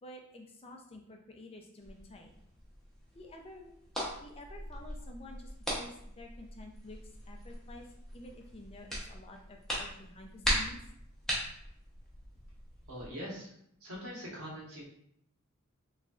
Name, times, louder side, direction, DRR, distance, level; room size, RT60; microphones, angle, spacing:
voice 1, 0.0-2.4 3.1-3.7 4.2-7.0 7.3-7.9 8.1-10.8, left 1 dB, 25° left, 2 dB, 0.4 m, -50 dB
sound 1, 1.8-13.1, equal, ahead, 0.8 m, -40 dB
voice 2, 12.9-13.5 13.8-14.9, equal, 80° right, -4 dB, 1.2 m, -42 dB
3.6 x 3.1 x 2.4 m, 0.71 s
head